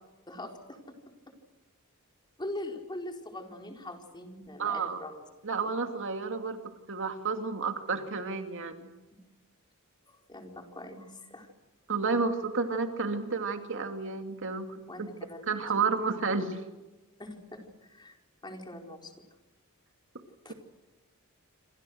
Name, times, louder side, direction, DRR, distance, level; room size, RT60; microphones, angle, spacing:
voice 1, 0.3-1.3 2.4-5.2 10.1-11.5 14.9-15.8 17.2-18.2 18.4-19.1 20.4-20.5, left 1 dB, 20° left, 3 dB, 4.5 m, -42 dB
voice 2, 4.6-5.0 5.4-6.6 6.9-8.9 11.9-15.1 15.5-16.6, right 4 dB, 60° right, 6 dB, 2.5 m, -31 dB
27.0 x 27.0 x 6.5 m, 1.1 s
head